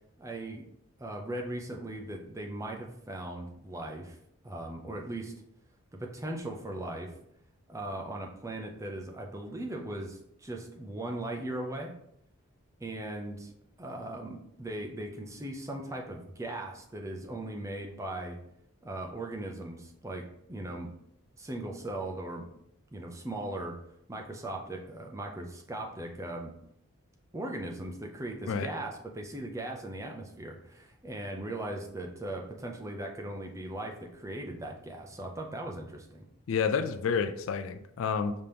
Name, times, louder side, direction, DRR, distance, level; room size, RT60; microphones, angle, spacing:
voice 1, 0.2-0.7 1.0-4.2 4.4-5.3 5.9-7.1 7.7-11.9 12.8-13.5 13.8-18.4 18.8-20.9 21.4-22.5 22.9-23.8 24.1-26.5 27.3-36.2, right 1 dB, 15° right, 1 dB, 0.5 m, -38 dB
voice 2, 36.5-38.3, left 6 dB, 65° left, 10 dB, 0.3 m, -29 dB
5.2 x 2.8 x 3.3 m, 0.74 s
head